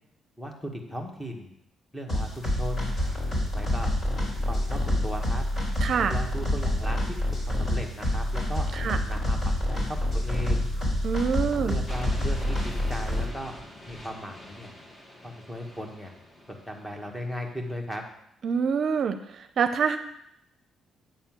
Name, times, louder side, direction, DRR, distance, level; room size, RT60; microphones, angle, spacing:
voice 1, 0.4-1.6 1.9-2.9 3.5-3.9 4.5-5.4 6.1-7.0 7.5-8.7 9.0-9.8 10.1-10.7 11.6-13.5 13.9-14.7 15.2-16.1 16.5-18.0, equal, 5° left, 2 dB, 1.7 m, -37 dB
sound 1, 2.1-13.3, left 1 dB, 45° left, 3.7 m, -27 dB
voice 2, 5.8-6.1 8.7-9.0 11.0-11.7 18.4-20.0, right 6 dB, 60° right, 9 dB, 0.6 m, -26 dB
sound 2, 11.9-17.7, left 1 dB, 25° left, 2.2 m, -46 dB
8.8 x 4.3 x 7.4 m, 0.77 s
cardioid pair, 90°, 0 cm